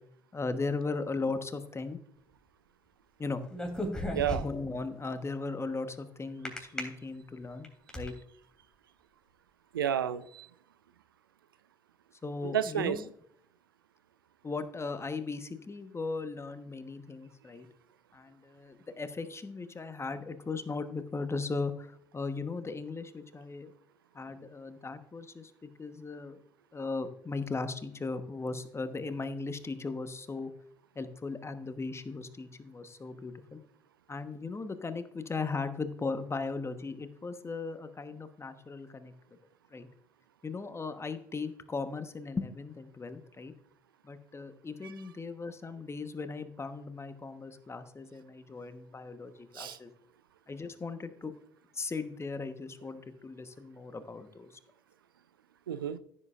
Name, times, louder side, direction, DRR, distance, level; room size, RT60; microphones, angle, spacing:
voice 1, 0.3-2.0 3.2-3.4 4.3-7.7 7.9-8.1 12.2-13.1 14.4-17.7 18.1-23.7 24.1-26.4 26.7-30.5 30.9-33.6 34.1-39.1 39.7-39.9 40.4-43.5 44.0-49.9 50.5-51.3 51.7-54.5, left 3 dB, 25° left, 10 dB, 1.2 m, -37 dB
sound 1, 3.5-4.7 6.5-6.8 7.4-8.1, equal, 5° left, 3.1 m, -34 dB
voice 2, 9.7-10.5 12.4-13.0 49.6-49.8 55.7-56.0, right 9 dB, 80° right, 14 dB, 0.4 m, -31 dB
15.0 x 7.7 x 2.5 m, 0.68 s
figure-of-eight pair, 50°, 11 cm